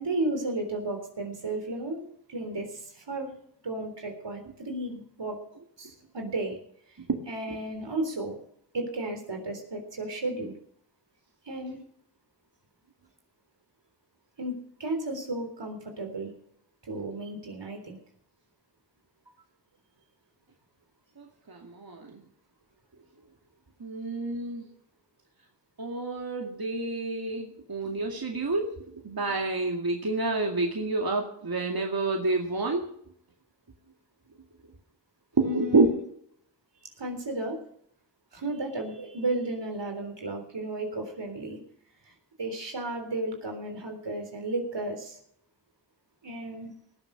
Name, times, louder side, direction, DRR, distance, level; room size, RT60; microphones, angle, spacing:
voice 1, 0.0-2.0 2.3-3.3 3.6-5.4 5.8-6.6 7.2-8.4 8.7-10.5 11.5-11.8 14.4-16.3 16.8-18.0 31.8-31.9 35.4-36.0 36.8-37.6 38.3-41.6 42.1-42.2 42.4-45.2 46.2-46.7, right 2 dB, 85° right, 4 dB, 3.8 m, -33 dB
voice 2, 21.2-22.2 23.8-24.6 25.8-28.7 29.0-32.9 35.4-35.9, right 3 dB, 60° right, 1 dB, 2.3 m, -28 dB
19.0 x 7.3 x 6.8 m, 0.66 s
wide cardioid pair, 45°, 42 cm